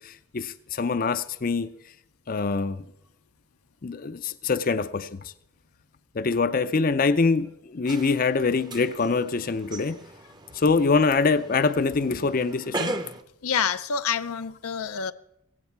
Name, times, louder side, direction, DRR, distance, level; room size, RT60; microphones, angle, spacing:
voice 1, 0.0-1.7 2.3-2.8 3.8-5.3 6.1-10.0 10.5-13.0, left 4 dB, 40° left, 0.5 m, -24 dB
sound 1, 7.9-13.2, right 2 dB, 20° right, 0.7 m, -38 dB
voice 2, 13.4-15.1, left 7 dB, 90° left, 0.6 m, -27 dB
17.0 x 16.0 x 4.5 m
head